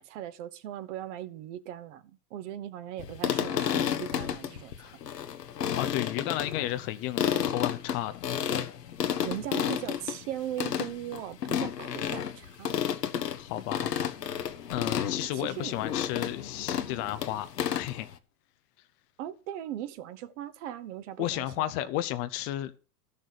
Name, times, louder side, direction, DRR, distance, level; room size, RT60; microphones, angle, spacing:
voice 1, 0.0-5.0 9.1-12.9 15.3-15.8 19.2-21.9, right 11 dB, 50° right, 1.2 m, -39 dB
sound 1, 3.0-18.1, left 9 dB, 80° left, 1.3 m, -32 dB
voice 2, 5.8-8.2 13.4-14.1 14.7-18.1 21.2-22.8, left 14 dB, 30° left, 0.6 m, -33 dB
13.0 x 6.5 x 6.6 m
hypercardioid pair, 110°, 47 cm